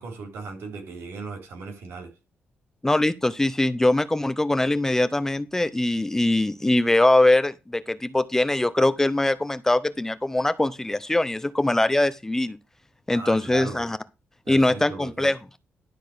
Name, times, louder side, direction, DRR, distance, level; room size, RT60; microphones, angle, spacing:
voice 1, 0.0-2.1 13.1-13.8 14.5-15.3, right 4 dB, 80° right, 3.5 m, -37 dB
voice 2, 2.8-12.6 13.1-14.0 14.5-15.4, left 1 dB, 10° left, 0.6 m, -22 dB
12.0 x 4.1 x 6.7 m
cardioid pair, 130°, 4 cm